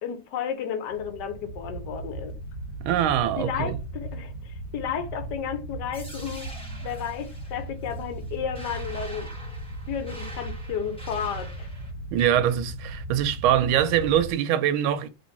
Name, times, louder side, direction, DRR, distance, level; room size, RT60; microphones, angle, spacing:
voice 1, 0.0-2.4 3.4-9.3 9.9-11.7, left 8 dB, 65° left, 1.3 m, -33 dB
sound 1, 0.9-14.3, right 1 dB, 85° left, 1.7 m, -37 dB
voice 2, 2.8-3.8 12.1-15.1, right 10 dB, 80° right, 1.3 m, -23 dB
sound 2, 5.9-11.9, right 1 dB, 10° left, 0.3 m, -45 dB
3.6 x 3.1 x 4.0 m
omnidirectional pair, 2.3 m